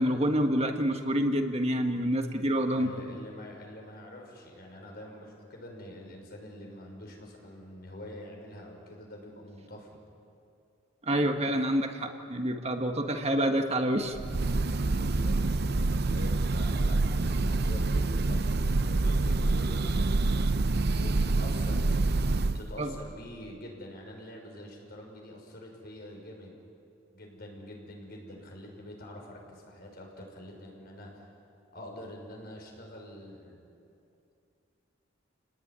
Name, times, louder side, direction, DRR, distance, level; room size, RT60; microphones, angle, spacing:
voice 1, 0.0-2.9 11.1-14.2 22.8-22.9, equal, 35° right, 5 dB, 1.5 m, -27 dB
voice 2, 2.7-10.0 14.8-20.4 20.9-22.1 22.4-26.6 27.1-31.3 31.7-33.6, left 1 dB, 50° left, 1 dB, 6.0 m, -46 dB
Breathing / Bird, 14.2-22.7, right 2 dB, 55° right, 0.7 m, -27 dB
29.5 x 19.0 x 9.7 m, 2.6 s
head